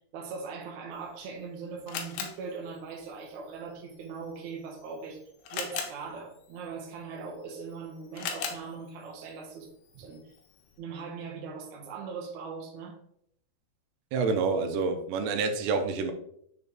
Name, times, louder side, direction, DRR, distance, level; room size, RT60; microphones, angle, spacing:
voice 1, 0.0-5.2 5.5-9.7 10.0-10.2 10.8-12.9, right 5 dB, 65° right, -1 dB, 1.9 m, -40 dB
Camera, 0.9-10.8, left 6 dB, 75° left, 2.6 m, -43 dB
voice 2, 14.1-16.1, right 4 dB, 85° right, 6 dB, 2.9 m, -27 dB
6.7 x 4.0 x 3.6 m, 0.70 s
omnidirectional pair, 5.0 m